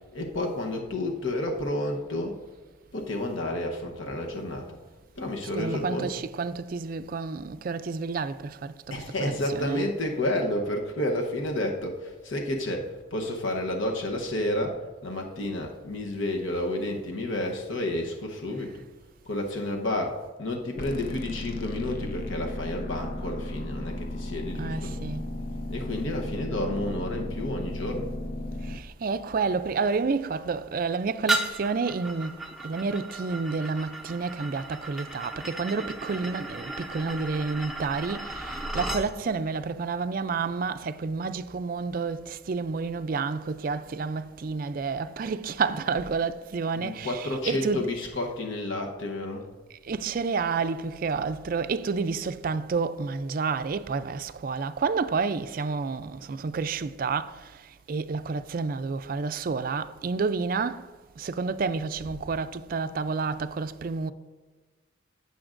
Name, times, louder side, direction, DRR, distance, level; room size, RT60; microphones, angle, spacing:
voice 1, 0.1-2.4 2.9-4.8 5.2-6.2 8.9-18.8 19.2-24.9 25.7-28.1 46.7-49.5 62.0-62.2, left 1 dB, 85° left, 1.0 m, -31 dB
voice 2, 5.4-10.0 18.6-18.7 24.5-25.3 28.6-48.2 49.8-64.1, right 4 dB, 45° right, 0.4 m, -30 dB
sound 1, 20.8-28.8, left 1 dB, 50° left, 0.7 m, -35 dB
sound 2, 31.3-39.1, right 2 dB, ahead, 0.7 m, -34 dB
15.0 x 7.0 x 2.5 m
head